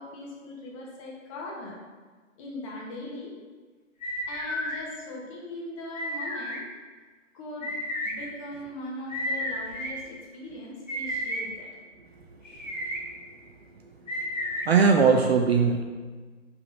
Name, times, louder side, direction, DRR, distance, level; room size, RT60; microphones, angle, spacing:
voice 1, 0.0-1.8 2.4-3.3 4.3-6.6 7.3-7.7 8.0-11.7, left 1 dB, 25° left, -3 dB, 1.4 m, -40 dB
sound 1, 4.0-4.8 5.9-6.6 7.6-8.1 9.1-9.9 10.9-11.4 12.5-13.0 14.1-14.7, equal, 75° left, 1.7 m, -32 dB
voice 2, 14.6-15.8, right 5 dB, 50° right, 3 dB, 0.6 m, -19 dB
5.6 x 4.0 x 5.4 m, 1.4 s
figure-of-eight pair, 135°, 39 cm